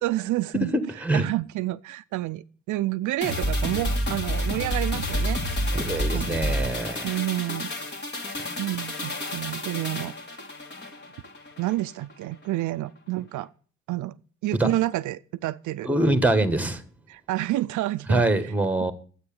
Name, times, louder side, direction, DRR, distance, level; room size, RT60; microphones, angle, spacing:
voice 1, 0.0-0.7 1.1-5.9 6.1-6.3 7.0-8.0 8.6-10.4 11.6-13.5 13.9-14.2 14.4-15.9 17.1-18.2, right 16 dB, 80° right, 0.5 m, -29 dB
voice 2, 0.7-1.2 5.7-7.2 8.4-8.5 14.5-14.7 15.8-16.8 18.1-18.9, right 2 dB, 5° right, 1.6 m, -24 dB
sound 1, 3.2-11.8 12.1-12.2, equal, 35° left, 2.4 m, -29 dB
9.7 x 8.1 x 8.7 m
cardioid pair, 90°, 30 cm